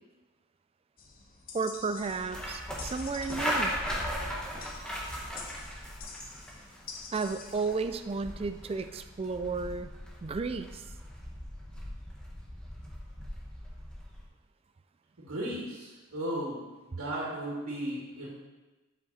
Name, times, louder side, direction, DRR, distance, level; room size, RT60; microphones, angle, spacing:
sound 1, 1.0-7.9, left 5 dB, 40° left, 0.7 m, -48 dB
voice 1, 1.5-3.7 7.1-9.9 10.2-10.8, right 4 dB, 25° right, 10 dB, 0.3 m, -33 dB
sound 2, 2.0-14.2, equal, 5° left, 1.0 m, -38 dB
voice 2, 15.2-16.6 16.9-18.3, right 1 dB, 80° right, -6 dB, 2.1 m, -35 dB
7.4 x 5.3 x 4.1 m, 1.2 s
head